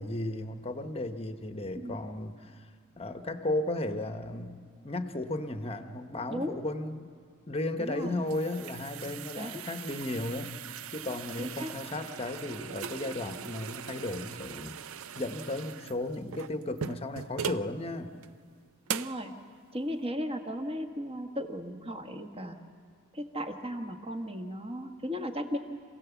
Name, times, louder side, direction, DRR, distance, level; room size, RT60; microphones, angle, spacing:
voice 1, 0.0-2.7 3.0-7.1 7.5-10.5 10.9-14.8 15.2-18.1, left 2 dB, 25° left, 7 dB, 1.0 m, -35 dB
voice 2, 7.8-8.2 9.4-9.6 11.4-11.7 18.9-19.3 19.7-22.6 23.1-25.6, equal, 25° right, 4 dB, 1.4 m, -36 dB
sound 1, 7.9-17.7 18.2-18.3 18.9-19.2, right 8 dB, 65° right, 0.5 m, -40 dB
27.5 x 17.0 x 7.1 m, 2.1 s
head